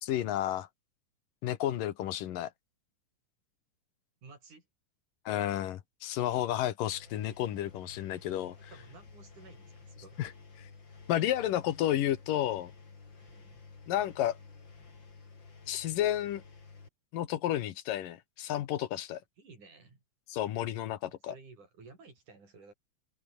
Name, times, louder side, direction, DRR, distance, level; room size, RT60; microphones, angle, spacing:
voice 1, 0.0-0.7 1.4-2.5 5.3-8.6 10.2-10.3 10.6-10.7 11.1-12.7 13.9-14.4 15.7-16.4 17.1-19.2 20.3-21.3, left 12 dB, 80° left, 3.0 m, -31 dB
voice 2, 4.2-4.7 6.1-6.5 8.5-10.2 11.1-11.3 13.2-13.6 19.4-20.0 21.1-22.7, right 4 dB, 65° right, 8.2 m, -55 dB
Engine, 6.9-16.9, left 4 dB, 35° left, 4.0 m, -53 dB
open air
omnidirectional pair, 3.8 m